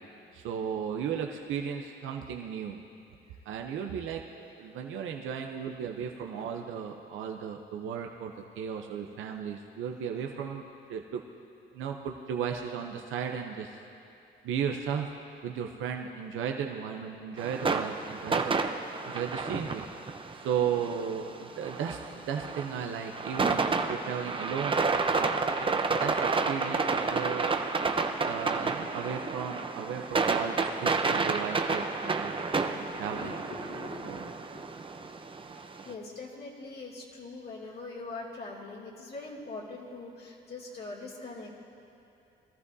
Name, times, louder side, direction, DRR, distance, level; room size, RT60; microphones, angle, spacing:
voice 1, 0.3-2.8 3.5-10.6 10.9-11.2 11.7-13.8 14.4-15.1 15.4-18.6 19.0-19.8 20.4-23.6 23.9-24.8 25.1-27.6 28.2-33.3 34.0-34.2, right 7 dB, 80° right, 2 dB, 0.7 m, -35 dB
sound 1, 17.4-35.9, right 4 dB, 25° right, 0.7 m, -30 dB
voice 2, 25.0-25.9 27.0-27.3 28.1-28.3 32.6-41.6, left 3 dB, 55° left, -4 dB, 2.6 m, -44 dB
21.0 x 13.5 x 2.7 m, 2.7 s
cardioid pair, 90°, 20 cm